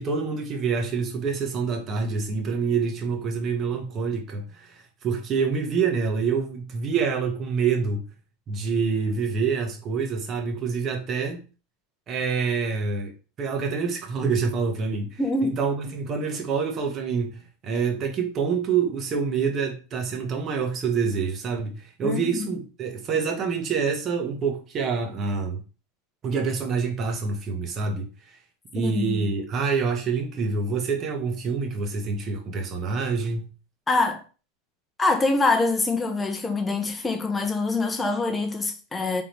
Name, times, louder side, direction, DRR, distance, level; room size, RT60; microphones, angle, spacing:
voice 1, 0.0-8.1 8.5-11.4 12.1-13.1 13.4-25.6 26.2-28.1 28.7-33.5, right 5 dB, 30° right, 1.1 m, -26 dB
voice 2, 15.2-15.5 22.0-22.5 28.7-29.3 33.9-34.2 35.0-39.2, left 3 dB, 15° left, 0.8 m, -25 dB
3.8 x 3.5 x 3.0 m
supercardioid pair, 140°, 0 cm